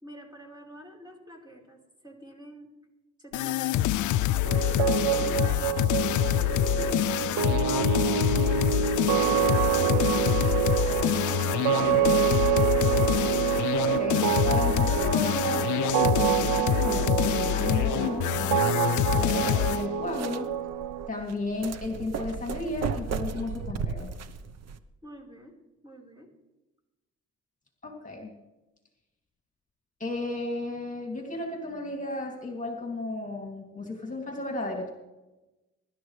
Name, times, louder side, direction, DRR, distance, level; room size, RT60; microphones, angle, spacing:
voice 1, 0.0-2.7 3.2-4.3 5.1-5.8 6.5-10.7 11.2-12.2 25.0-25.5 25.8-26.3, equal, 15° right, 0 dB, 4.3 m, -48 dB
sound 1, 3.3-19.9, left 14 dB, 75° left, 0.4 m, -26 dB
sound 2, 4.4-21.1, right 9 dB, 85° right, 0.6 m, -27 dB
voice 2, 13.8-18.7 19.2-20.5 21.1-24.1 27.8-28.3 30.0-34.9, left 2 dB, 25° left, 0 dB, 2.5 m, -34 dB
sound 3, 18.2-24.8, right 6 dB, 55° right, 1.0 m, -36 dB
24.5 x 12.0 x 3.2 m, 1.0 s
cardioid pair, 90°, 30 cm